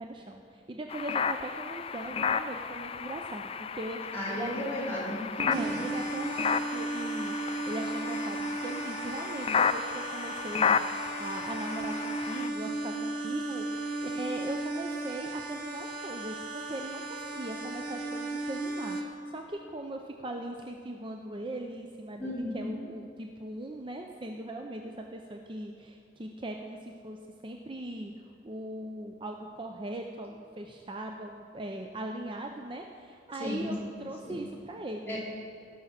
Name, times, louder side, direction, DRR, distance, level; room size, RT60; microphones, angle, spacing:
voice 1, 0.0-4.5 5.4-27.2 27.4-28.1 28.4-35.2, right 1 dB, 30° right, 3 dB, 0.5 m, -40 dB
sound 1, 0.9-12.5, left 6 dB, 30° left, 0.3 m, -33 dB
voice 2, 4.1-5.8 22.2-22.8 33.4-33.7 34.2-34.4 35.1-35.2, left 1 dB, 10° left, -8 dB, 3.6 m, -34 dB
sound 2, 5.5-19.0, right 2 dB, 50° right, 1.3 m, -36 dB
18.5 x 6.3 x 5.7 m, 2.4 s
head